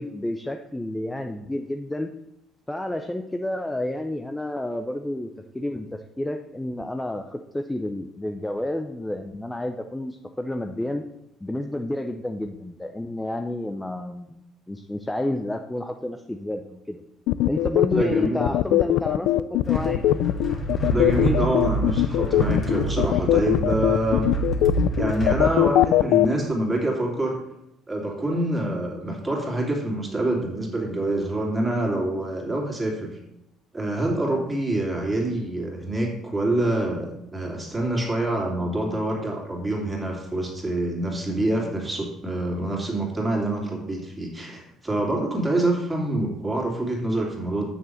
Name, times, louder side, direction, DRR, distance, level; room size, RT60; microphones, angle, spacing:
voice 1, 0.0-2.1 2.7-5.3 5.5-11.0 11.4-14.4 14.7-17.0 17.4-20.0, left 1 dB, 10° left, 5 dB, 0.6 m, -30 dB
sound 1, 17.3-26.3, left 15 dB, 80° left, 0.3 m, -20 dB
voice 2, 17.9-18.5 20.8-24.3 25.0-27.4 27.9-33.1 33.7-47.6, right 1 dB, 15° right, -1 dB, 2.8 m, -26 dB
sound 2, 19.6-25.4, right 2 dB, 35° left, 2.0 m, -28 dB
6.9 x 6.2 x 6.4 m, 0.86 s
cardioid pair, 115°, 0 cm